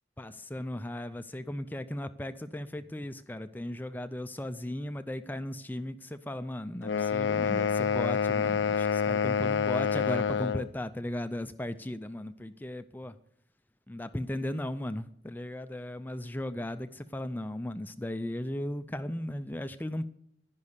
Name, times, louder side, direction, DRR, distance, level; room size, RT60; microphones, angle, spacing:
voice 1, 0.2-13.2 13.9-20.1, left 1 dB, 10° left, 11 dB, 0.4 m, -36 dB
sound 1, 6.8-10.7, left 6 dB, 70° left, 0.5 m, -27 dB
11.0 x 10.5 x 6.6 m, 0.71 s
head